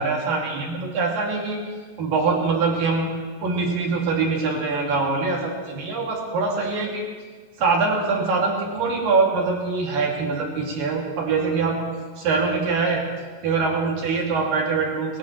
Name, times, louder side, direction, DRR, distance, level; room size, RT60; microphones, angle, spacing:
voice 1, 0.0-1.6 2.0-3.1 3.4-7.0 7.6-11.9 12.2-13.0 13.4-15.2, right 4 dB, 50° right, -2 dB, 3.7 m, -23 dB
21.5 x 20.0 x 3.2 m, 1.5 s
omnidirectional pair, 5.8 m